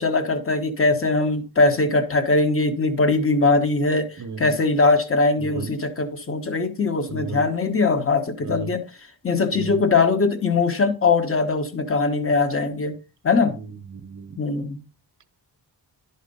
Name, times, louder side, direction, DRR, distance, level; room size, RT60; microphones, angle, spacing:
voice 1, 0.0-8.8 9.2-12.9 13.2-13.6 14.4-14.8, left 3 dB, 30° left, 1.3 m, -21 dB
voice 2, 4.2-4.6 5.4-5.7 7.1-7.5 8.4-8.8 9.5-9.8 13.5-14.4, right 5 dB, 45° right, 0.9 m, -35 dB
11.5 x 4.2 x 5.4 m
wide cardioid pair, 170°, 42 cm